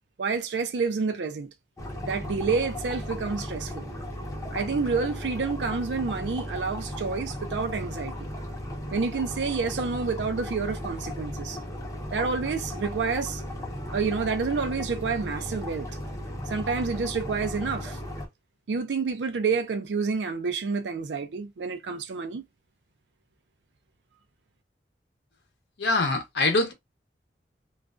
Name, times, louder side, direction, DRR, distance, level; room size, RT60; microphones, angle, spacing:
voice 1, 0.2-1.5 2.0-3.9 4.5-8.1 8.9-11.6 12.1-13.4 13.9-15.9 16.5-18.0 18.7-22.5, right 4 dB, 80° right, 0.4 m, -29 dB
sound 1, 1.8-18.3, left 1 dB, 20° left, 0.6 m, -36 dB
voice 2, 25.8-26.7, left 2 dB, 75° left, 0.7 m, -24 dB
2.4 x 2.2 x 2.4 m
head